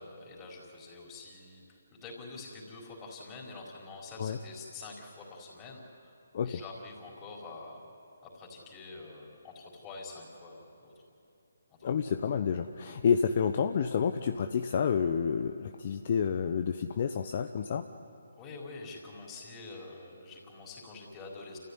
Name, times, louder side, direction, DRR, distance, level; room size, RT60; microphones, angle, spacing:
voice 1, 0.0-6.1 6.4-7.8 8.2-10.9 11.9-12.0 18.4-21.6, left 3 dB, 20° left, -2 dB, 4.6 m, -46 dB
voice 2, 11.8-17.8, left 6 dB, 45° left, 7 dB, 0.9 m, -29 dB
29.0 x 14.5 x 9.8 m, 2.8 s
figure-of-eight pair, 150°, 0 cm